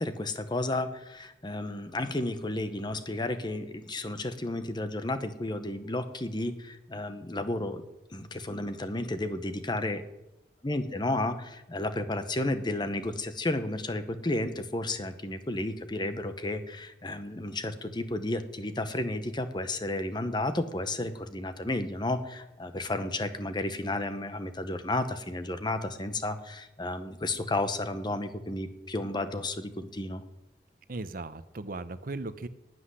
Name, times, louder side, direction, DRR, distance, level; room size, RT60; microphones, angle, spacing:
voice 1, 0.0-7.8 8.1-10.0 10.6-30.2, left 2 dB, 25° left, 10 dB, 1.0 m, -32 dB
voice 2, 30.9-32.5, right 2 dB, 55° right, 13 dB, 0.7 m, -37 dB
12.0 x 7.9 x 9.9 m, 0.95 s
head